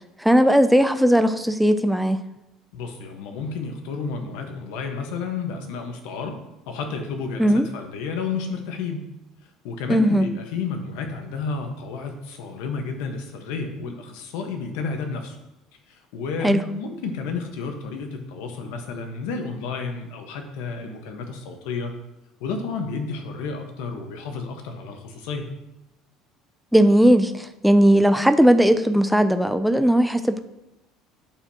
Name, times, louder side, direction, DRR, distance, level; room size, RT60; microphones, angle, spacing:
voice 1, 0.2-2.2 7.4-7.7 9.9-10.3 16.4-16.6 26.7-30.4, equal, ahead, 8 dB, 0.3 m, -17 dB
voice 2, 2.7-6.4 6.7-9.0 9.6-15.4 15.9-21.9 22.4-25.5, left 4 dB, 85° left, 4 dB, 1.2 m, -31 dB
8.9 x 6.6 x 2.9 m, 0.94 s
cardioid pair, 175°, 0 cm